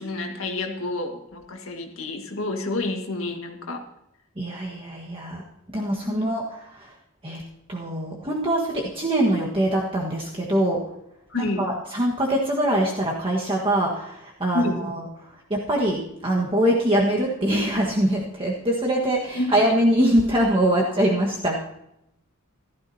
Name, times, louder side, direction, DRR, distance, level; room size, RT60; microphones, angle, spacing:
voice 1, 0.0-3.8 6.0-6.2 11.3-11.7 14.5-14.8 19.4-19.6, left 2 dB, 70° left, 3 dB, 1.8 m, -28 dB
voice 2, 4.4-5.4 5.7-6.9 7.2-7.4 7.7-10.8 11.4-15.1 15.5-21.6, right 1 dB, 25° right, -2 dB, 1.5 m, -23 dB
16.0 x 13.5 x 2.8 m, 0.80 s
head